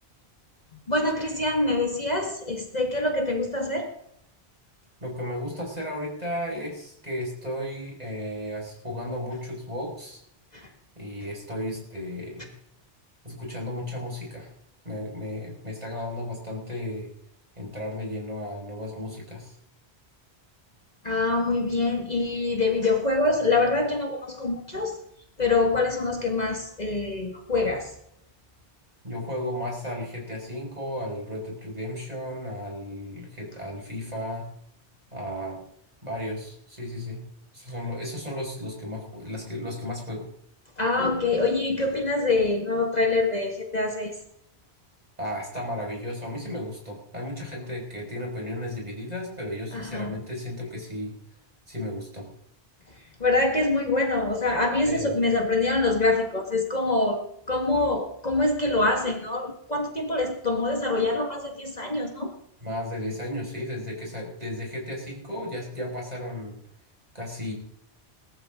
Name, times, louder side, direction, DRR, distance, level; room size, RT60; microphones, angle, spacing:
voice 1, 0.9-3.9 10.5-10.7 21.0-25.0 25.4-27.9 40.8-44.2 49.7-50.2 52.9-57.2 57.5-62.3, left 2 dB, 40° left, 2 dB, 2.0 m, -25 dB
voice 2, 5.0-10.2 11.0-12.6 13.2-14.5 14.8-17.1 17.6-19.6 29.0-34.5 35.1-35.6 36.0-37.2 37.5-40.3 45.2-51.2 51.7-52.3 54.9-55.2 62.6-66.6 67.1-67.5, left 1 dB, 35° right, -1 dB, 5.8 m, -34 dB
20.0 x 14.0 x 3.8 m, 0.72 s
omnidirectional pair, 1.1 m